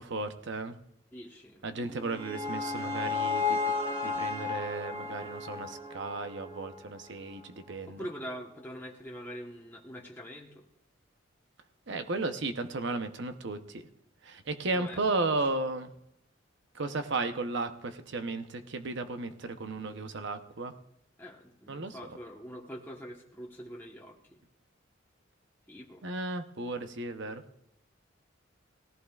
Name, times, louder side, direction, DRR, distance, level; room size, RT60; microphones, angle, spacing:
voice 1, 0.1-0.8 1.6-3.6 4.0-8.1 11.9-13.8 14.2-15.9 16.7-20.7 21.7-22.0 26.0-27.4, right 3 dB, 60° right, 8 dB, 0.8 m, -34 dB
voice 2, 1.1-1.6 7.9-10.6 14.7-15.2 21.2-24.2 25.7-26.0, equal, 10° left, -3 dB, 1.2 m, -44 dB
sound 1, 1.8-7.0, left 4 dB, 30° right, 1.5 m, -33 dB
18.0 x 15.0 x 2.4 m, 0.80 s
head